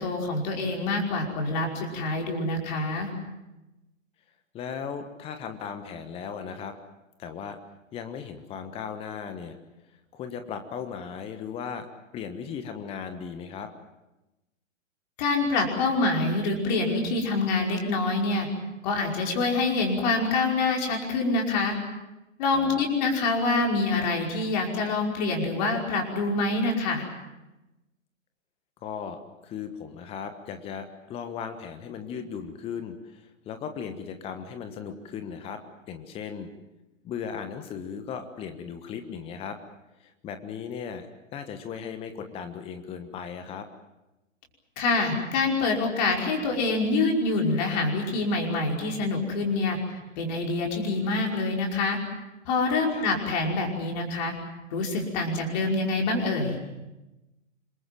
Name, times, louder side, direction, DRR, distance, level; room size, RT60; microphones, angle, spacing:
voice 1, 0.0-3.1 15.2-18.5 18.8-21.8 22.4-27.0 44.8-49.8 50.2-52.0 52.5-54.3 54.7-56.6, left 3 dB, 35° left, 1 dB, 5.4 m, -26 dB
voice 2, 4.5-6.7 7.2-7.6 7.9-9.6 10.1-11.9 12.1-13.7 22.5-22.8 28.8-35.6 35.9-36.5 37.0-39.6 40.0-41.1 41.3-43.7 52.9-53.1, left 7 dB, 15° left, 8 dB, 1.4 m, -37 dB
27.0 x 22.5 x 7.6 m, 1.0 s
figure-of-eight pair, 120°, 39 cm